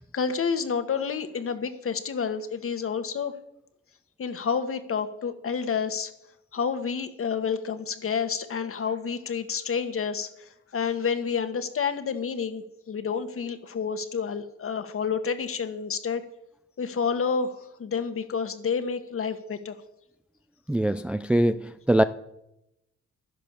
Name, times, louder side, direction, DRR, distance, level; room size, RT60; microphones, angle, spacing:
voice 1, 0.0-3.3 4.2-6.1 6.5-16.2 16.8-19.8, left 6 dB, 45° left, 9 dB, 1.6 m, -29 dB
voice 2, 20.7-22.0, right 1 dB, 5° right, 11 dB, 0.4 m, -23 dB
11.5 x 10.5 x 6.8 m, 0.86 s
cardioid pair, 90°, 30 cm